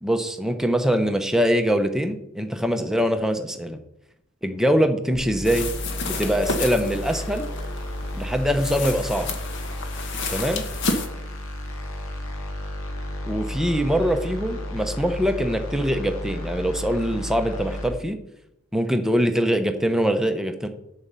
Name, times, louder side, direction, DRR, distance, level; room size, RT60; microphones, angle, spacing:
voice 1, 0.0-3.8 4.4-5.7 6.0-7.5 8.1-9.3 10.3-10.6 13.3-18.2 18.7-20.7, equal, ahead, 6 dB, 0.7 m, -23 dB
sound 1, 5.1-17.9, left 1 dB, 75° left, 2.0 m, -33 dB
sound 2, 5.4-11.1, left 3 dB, 55° left, 1.1 m, -31 dB
8.2 x 7.0 x 5.5 m, 0.83 s
head